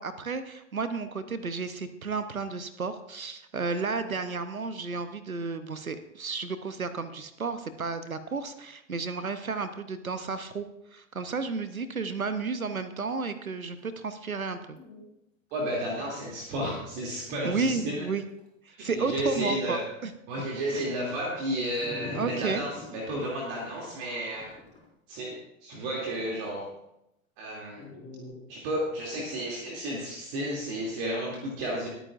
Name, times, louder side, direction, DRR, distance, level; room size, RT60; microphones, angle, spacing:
voice 1, 0.0-14.8 17.4-18.2 18.6-20.1 20.7-20.8 22.1-22.6, right 4 dB, 85° right, 11 dB, 0.8 m, -32 dB
Dog, 14.7-15.0 15.7-15.8 16.4-16.5 17.3-17.8 18.4-18.5 21.8-22.9 24.3-24.9 27.8-28.3, left 3 dB, 15° left, 4.4 m, -41 dB
voice 2, 15.5-18.1 18.8-19.9 20.3-24.5 25.1-26.7 27.4-27.8 28.5-31.9, right 1 dB, 45° right, -2 dB, 2.7 m, -32 dB
21.0 x 9.0 x 2.5 m, 0.83 s
figure-of-eight pair, 90°, 41 cm